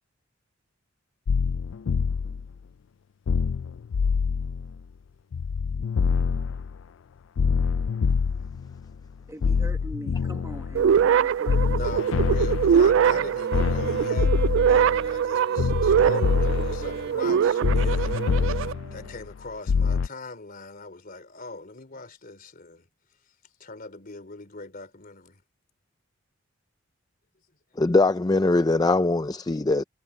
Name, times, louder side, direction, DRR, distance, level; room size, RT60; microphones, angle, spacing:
sound 1, 1.3-2.5 3.3-4.8 5.3-6.8 7.4-9.0 9.4-11.2 11.5-13.2 13.5-15.2 15.6-17.1 17.6-19.3 19.7-20.1, left 5 dB, 80° left, 0.4 m, -25 dB
voice 1, 9.3-11.8, equal, 15° right, 1.6 m, -41 dB
sound 2, 10.7-18.7, right 8 dB, 75° right, 0.3 m, -23 dB
voice 2, 11.7-14.3 14.7-18.5 18.9-22.9 23.6-25.4, left 3 dB, 50° left, 3.2 m, -40 dB
Wind instrument woodwind instrument, 13.0-19.4, right 3 dB, 55° right, 1.8 m, -42 dB
voice 3, 27.8-29.8, left 2 dB, 20° left, 0.5 m, -21 dB
head